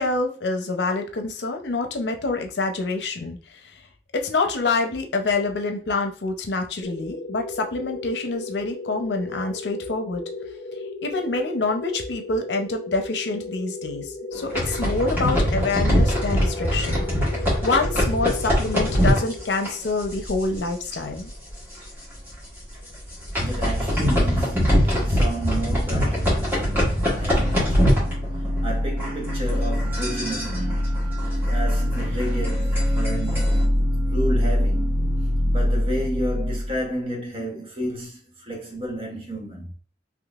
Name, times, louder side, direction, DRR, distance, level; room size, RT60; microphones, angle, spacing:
voice 1, 0.0-3.4 3.6-3.8 4.1-10.2 11.0-17.0 17.6-21.3, left 3 dB, 85° left, 0.6 m, -26 dB
sound 1, 6.8-20.0, left 3 dB, 40° left, 0.6 m, -36 dB
sound 2, 14.3-20.7 20.9-21.2 21.5-21.6 22.1-22.3 22.9-28.7 29.0-33.6, equal, 10° right, 1.4 m, -23 dB
voice 2, 23.4-28.3 28.6-34.8 35.5-39.7, right 1 dB, 30° right, 1.0 m, -32 dB
sound 3, 27.0-36.8, left 1 dB, 75° right, 0.9 m, -24 dB
3.7 x 3.0 x 2.4 m
head